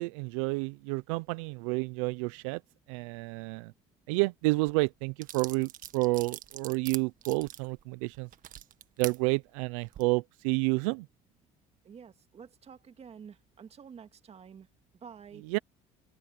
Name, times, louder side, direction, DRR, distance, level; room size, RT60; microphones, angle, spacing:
voice 1, 0.0-2.6 2.9-3.7 4.1-8.3 9.0-11.1 15.5-15.6, right 26 dB, 85° right, 0.6 m, -30 dB
sound 1, 4.7-4.8 5.2-9.2 9.8-10.0, right 11 dB, 55° right, 1.7 m, -43 dB
voice 2, 11.8-14.7 14.9-15.4, right 7 dB, 40° right, 2.0 m, -49 dB
open air
supercardioid pair, 80°, 16 cm